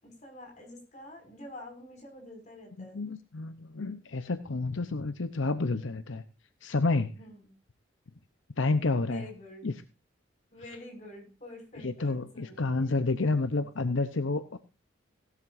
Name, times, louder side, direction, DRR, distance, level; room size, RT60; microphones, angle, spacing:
voice 1, 0.0-3.0 7.2-7.5 9.0-9.7 10.5-13.3, left 1 dB, 35° left, 3 dB, 6.0 m, -48 dB
voice 2, 2.8-6.2 6.6-7.2 8.6-9.3 9.6-9.7 11.8-14.6, left 3 dB, 75° left, 11 dB, 0.8 m, -29 dB
17.0 x 12.5 x 2.7 m, 0.31 s
head